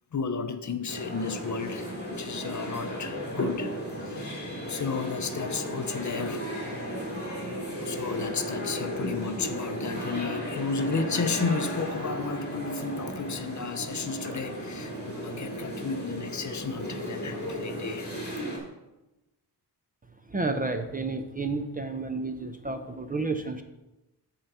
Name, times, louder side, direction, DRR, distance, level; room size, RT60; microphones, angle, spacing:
voice 1, 0.1-6.5 7.2-7.5 7.8-18.1, left 5 dB, 45° left, 9 dB, 0.5 m, -33 dB
sound 1, 0.9-18.6, equal, 25° left, 2.6 m, -35 dB
voice 2, 20.3-23.6, right 3 dB, 20° right, 7 dB, 0.4 m, -31 dB
7.5 x 4.6 x 6.7 m, 0.99 s
wide cardioid pair, 175°, 42 cm